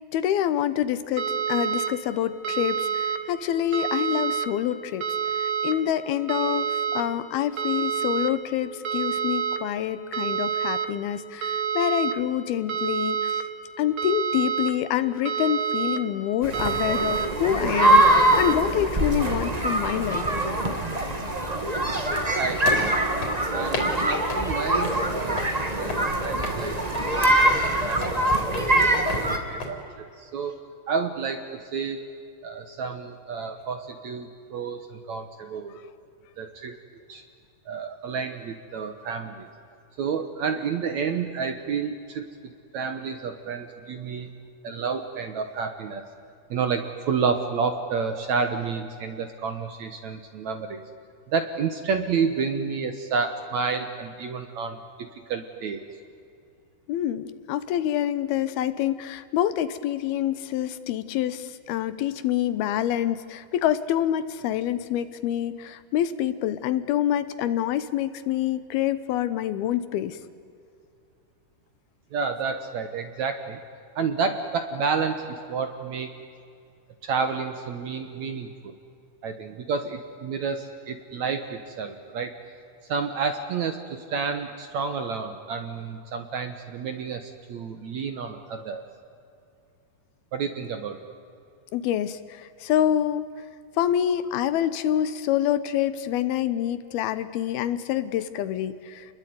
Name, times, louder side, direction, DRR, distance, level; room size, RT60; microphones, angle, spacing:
voice 1, 0.1-5.1 5.4-6.7 6.9-13.4 13.8-20.2 56.9-70.2 91.7-93.3 93.8-99.1, left 11 dB, 75° left, 13 dB, 2.8 m, -26 dB
sound 1, 1.2-1.9 2.4-3.2 3.7-4.5 5.0-5.7 6.3-7.0 7.6-8.3 8.8-9.6 10.1-10.9 11.4-12.1 12.7-13.4 14.0-14.7 15.2-16.0 16.5-17.3 17.8-18.5, right 7 dB, 45° right, 2.1 m, -27 dB
sound 2, 16.4-29.4, right 1 dB, 20° right, 1.1 m, -23 dB
sound 3, 22.1-29.7, left 2 dB, 40° left, 4.6 m, -36 dB
voice 2, 22.4-23.1 23.5-30.6 30.9-32.0 32.4-35.8 36.4-36.8 37.1-37.2 37.7-39.5 40.0-42.3 42.7-44.4 44.6-46.0 46.5-50.8 51.3-55.8 72.1-73.6 74.0-76.1 77.0-78.7 79.2-82.3 82.9-88.8 90.3-91.0, right 5 dB, 60° right, 7 dB, 2.0 m, -30 dB
29.5 x 21.5 x 9.5 m, 2.5 s
omnidirectional pair, 4.6 m